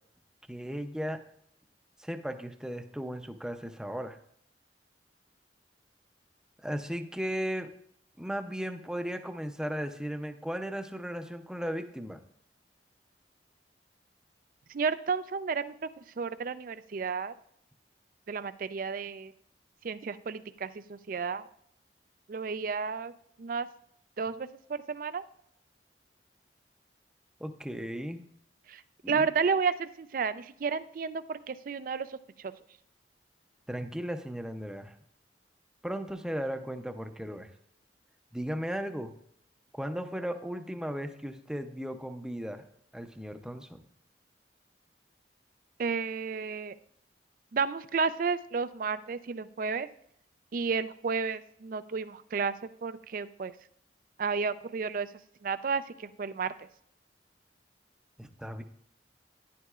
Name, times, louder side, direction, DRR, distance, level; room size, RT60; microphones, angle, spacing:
voice 1, 0.5-1.2 2.0-4.2 6.6-7.7 8.2-12.2 27.4-28.2 29.0-29.2 33.7-35.0 35.8-37.5 38.3-39.1 39.7-42.6 42.9-43.8 58.2-58.6, equal, 5° right, 7 dB, 0.6 m, -36 dB
voice 2, 14.7-15.9 16.2-17.3 18.3-19.3 19.8-21.5 22.3-23.1 23.4-23.7 24.2-25.2 28.7-28.8 29.1-32.5 45.8-46.8 47.5-49.9 50.5-53.5 54.2-55.1 55.4-56.5, right 5 dB, 50° right, 13 dB, 0.4 m, -32 dB
11.0 x 11.0 x 2.4 m, 0.68 s
head